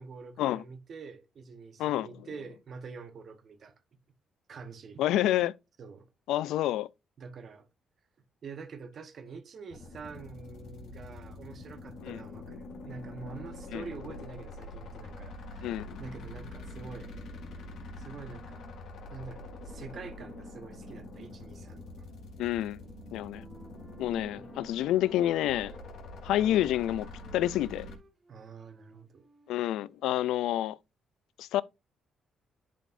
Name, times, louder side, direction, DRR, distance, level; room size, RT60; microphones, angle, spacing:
voice 1, 0.0-3.7 4.5-5.0 5.8-6.1 7.2-7.7 8.4-17.2 18.0-18.7 19.1-22.0 24.2-24.5 28.3-29.3, right 5 dB, 55° right, 1.1 m, -46 dB
voice 2, 5.0-5.5 6.3-6.9 12.0-12.2 13.7-13.8 15.6-16.0 22.4-22.8 23.1-23.4 24.0-25.7 26.2-27.9 29.5-30.8 31.4-31.6, left 13 dB, 85° left, 0.3 m, -28 dB
sound 1, 9.7-28.0, left 2 dB, 70° left, 2.2 m, -45 dB
Wind instrument woodwind instrument, 22.5-25.9 26.2-30.1, equal, 30° right, 1.6 m, -58 dB
11.0 x 5.1 x 2.6 m
cardioid pair, 90°, 0 cm